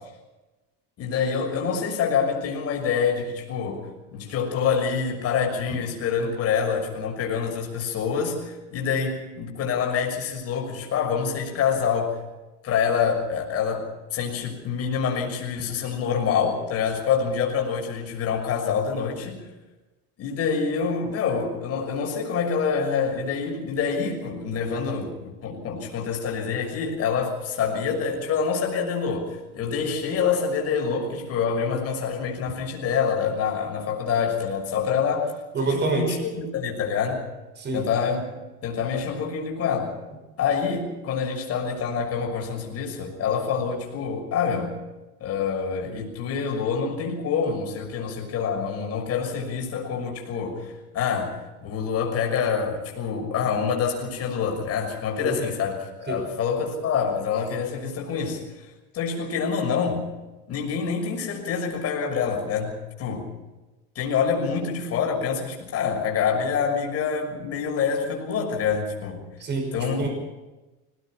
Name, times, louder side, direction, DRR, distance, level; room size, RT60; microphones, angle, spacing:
voice 1, 1.0-12.2 12.6-13.9 14.1-19.4 20.2-35.3 35.6-37.2 37.7-38.2 38.6-39.9 40.4-44.8 45.2-51.3 51.6-58.7 58.9-60.1 60.5-63.3 63.9-69.2 69.7-70.1, left 6 dB, 35° left, 1 dB, 6.3 m, -26 dB
voice 2, 35.5-36.2 37.6-37.8 55.2-55.4 56.1-56.2 69.4-70.1, right 3 dB, 25° right, 4 dB, 5.9 m, -27 dB
23.5 x 19.0 x 5.9 m, 1.1 s
cardioid pair, 155°, 40 cm